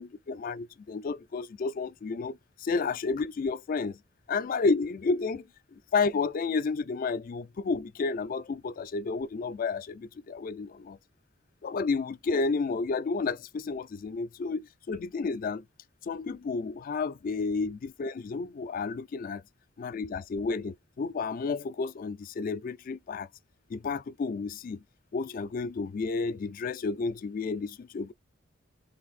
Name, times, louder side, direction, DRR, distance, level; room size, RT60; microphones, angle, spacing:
voice 1, 0.0-4.0 4.3-11.0 11.6-15.6 16.0-19.4 19.8-23.3 23.7-24.8 25.1-28.1, left 4 dB, 45° left, 0.3 m, -31 dB
3.5 x 2.5 x 4.0 m
head